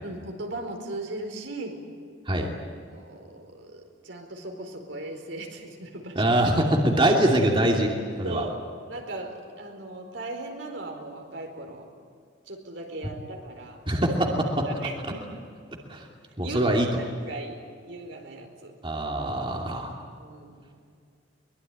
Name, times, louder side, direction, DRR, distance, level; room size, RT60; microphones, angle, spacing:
voice 1, 0.0-1.8 2.9-6.3 8.2-8.5 8.9-11.8 12.5-13.8 14.8-15.2 16.4-17.6 17.9-18.7 20.2-20.6, right 2 dB, 75° right, 3 dB, 4.7 m, -38 dB
voice 2, 6.1-8.4 13.9-14.7 15.9-16.1 16.4-16.9 18.8-19.9, right 1 dB, 30° right, 0 dB, 2.7 m, -23 dB
23.5 x 22.0 x 9.4 m, 2.2 s
head